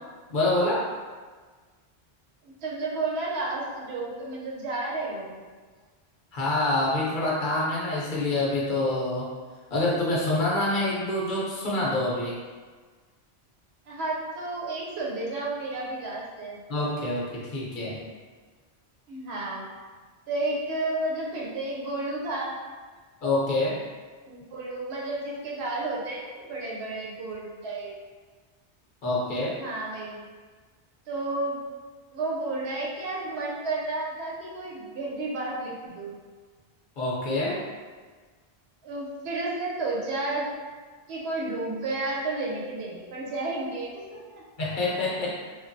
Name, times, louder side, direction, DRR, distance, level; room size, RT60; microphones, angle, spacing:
voice 1, 0.3-0.8 6.3-9.3 9.7-12.4 16.7-18.0 23.2-23.8 29.0-29.6 37.0-37.6 44.6-45.4, left 2 dB, 55° left, -5 dB, 0.8 m, -26 dB
voice 2, 2.4-5.4 13.9-16.6 19.1-19.7 20.3-22.5 24.3-27.9 29.6-30.2 31.1-31.6 32.1-36.2 38.8-40.5 41.1-44.4, right 2 dB, 85° right, -4 dB, 0.9 m, -32 dB
3.1 x 2.2 x 2.5 m, 1.5 s
omnidirectional pair, 1.0 m